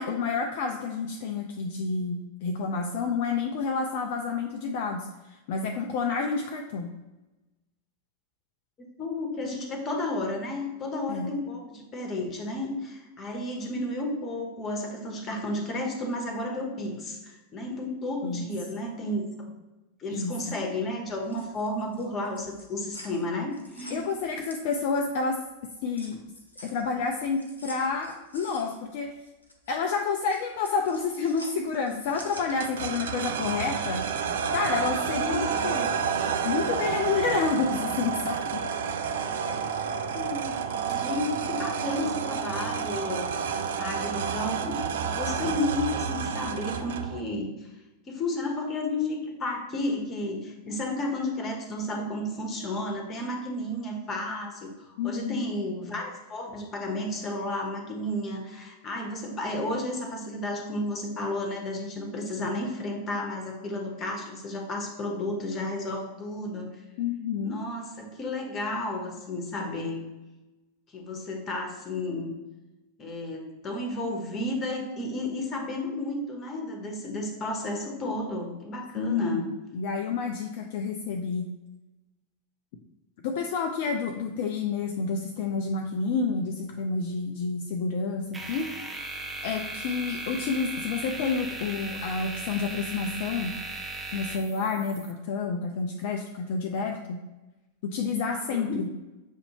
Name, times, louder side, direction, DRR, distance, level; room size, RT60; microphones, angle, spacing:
voice 1, 0.0-6.9 11.1-11.3 18.2-18.5 20.1-20.5 23.9-25.4 25.8-26.2 26.6-29.2 29.7-34.0 34.5-35.9 36.4-38.6 55.0-55.4 67.0-67.6 79.0-79.5 79.7-81.5 83.2-88.7 89.4-93.5 94.1-97.2 97.8-98.9, left 5 dB, 50° left, 3 dB, 0.4 m, -29 dB
voice 2, 9.0-19.3 20.0-24.1 35.3-35.4 40.1-44.8 45.1-47.5 48.1-66.7 67.4-70.0 70.9-72.3 73.0-79.4 98.3-98.7, left 1 dB, 25° left, 2 dB, 1.0 m, -32 dB
sound 1, 21.1-25.2 25.6-33.7, left 1 dB, 85° left, 0.6 m, -48 dB
sound 2, 32.4-47.2, right 7 dB, 60° right, 0.3 m, -30 dB
sound 3, 88.3-95.1, right 2 dB, 15° right, 0.6 m, -37 dB
6.4 x 2.6 x 2.9 m, 1.1 s
figure-of-eight pair, 90°, 0 cm